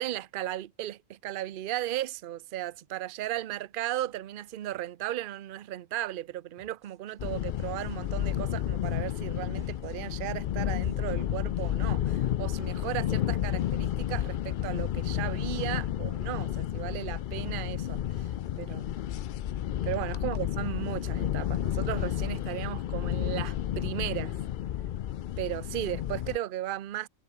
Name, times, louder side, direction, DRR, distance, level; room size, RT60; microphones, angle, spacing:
voice 1, 0.0-18.3 18.6-18.9 19.8-24.4 25.4-27.1, right 13 dB, 55° right, 0.6 m, -35 dB
sound 1, 6.6-14.6, right 1 dB, 15° right, 2.8 m, -63 dB
sound 2, 7.2-26.4, left 11 dB, 80° left, 0.4 m, -31 dB
omnidirectional pair, 1.4 m